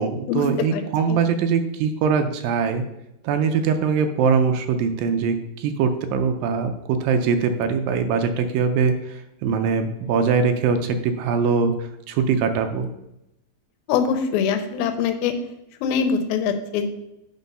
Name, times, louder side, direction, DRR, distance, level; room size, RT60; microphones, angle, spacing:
voice 1, 0.0-2.8 3.2-12.9, right 5 dB, 80° right, 7 dB, 2.2 m, -22 dB
voice 2, 13.9-15.3 15.8-16.9, left 7 dB, 80° left, 7 dB, 2.5 m, -23 dB
8.3 x 4.5 x 5.4 m, 0.86 s
omnidirectional pair, 4.5 m